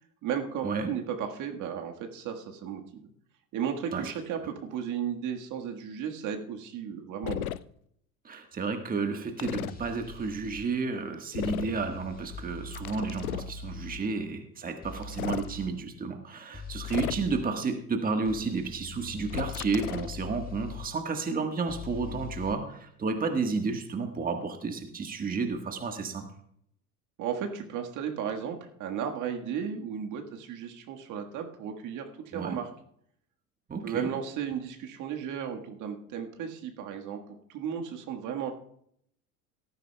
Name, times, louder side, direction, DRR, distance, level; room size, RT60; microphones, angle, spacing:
voice 1, 0.2-3.1 3.5-7.5 27.2-32.7 33.8-37.2 37.5-38.5, right 8 dB, 45° right, 3 dB, 1.7 m, -34 dB
sound 1, 7.2-7.6 9.4-9.7 11.3-11.8 12.7-13.5 15.0-15.5 16.8-17.4 19.3-20.1, left 13 dB, 80° left, 0.5 m, -35 dB
voice 2, 8.2-26.3 32.3-32.6 33.7-34.1, right 4 dB, 20° right, 5 dB, 1.5 m, -31 dB
sound 2, 9.7-10.6 11.4-14.0 14.8-15.7 16.5-17.5 18.3-20.9 21.7-22.5, left 5 dB, 20° left, 2.1 m, -42 dB
18.5 x 13.5 x 2.3 m, 0.70 s
figure-of-eight pair, 75°, 43 cm